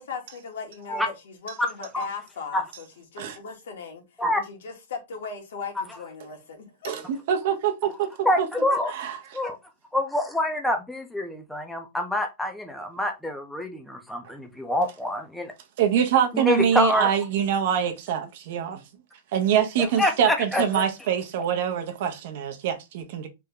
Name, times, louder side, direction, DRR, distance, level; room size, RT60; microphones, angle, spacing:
voice 1, 0.0-2.9 3.1-4.0 4.3-7.0, left 5 dB, 80° left, 1.3 m, -38 dB
voice 2, 6.8-8.5 9.0-9.1 15.8-18.8 19.3-23.3, right 8 dB, 55° right, 0.6 m, -24 dB
voice 3, 8.2-9.0 9.3-9.6 9.9-15.5 16.3-17.1 19.8-20.9, left 1 dB, ahead, 0.5 m, -26 dB
3.3 x 2.1 x 3.5 m
supercardioid pair, 155°, 0 cm